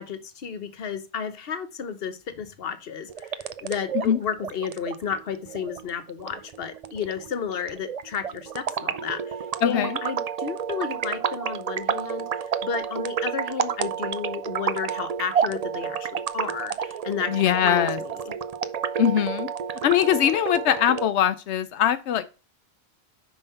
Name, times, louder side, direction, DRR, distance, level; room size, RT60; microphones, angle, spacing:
voice 1, 0.0-18.3, left 7 dB, 60° left, 1.1 m, -32 dB
sound 1, 3.1-21.1, right 7 dB, 45° right, 0.5 m, -30 dB
voice 2, 9.6-10.0 17.3-18.0 19.0-19.5 19.8-22.3, left 10 dB, 90° left, 0.9 m, -22 dB
5.5 x 5.3 x 5.6 m
omnidirectional pair, 1.1 m